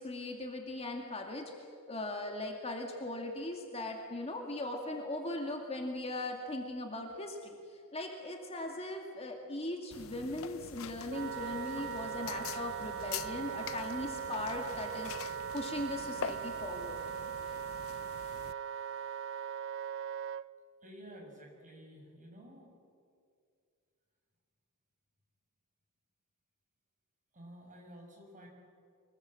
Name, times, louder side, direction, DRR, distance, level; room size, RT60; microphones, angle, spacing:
voice 1, 0.0-17.0, left 1 dB, 30° left, 2 dB, 2.3 m, -39 dB
sound 1, 9.9-18.5, left 8 dB, 65° left, 0.6 m, -45 dB
Wind instrument woodwind instrument, 11.1-20.4, right 8 dB, 60° right, 0.5 m, -40 dB
voice 2, 20.8-22.7 27.3-28.5, equal, 35° right, 2 dB, 6.0 m, -52 dB
24.5 x 22.0 x 7.7 m, 2.3 s
head